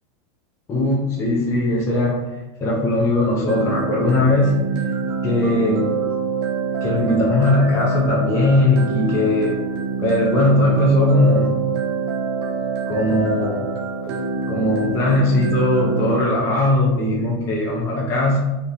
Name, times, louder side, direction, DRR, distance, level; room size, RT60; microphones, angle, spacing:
voice 1, 0.7-2.3 2.6-4.6 5.2-5.9 6.8-9.6 10.0-11.5 12.9-13.7 14.5-18.4, left 1 dB, 15° left, -3 dB, 0.3 m, -19 dB
sound 1, 3.5-16.3, right 5 dB, 55° right, 0.4 m, -26 dB
2.7 x 2.1 x 2.4 m, 1.0 s
supercardioid pair, 150°, 16 cm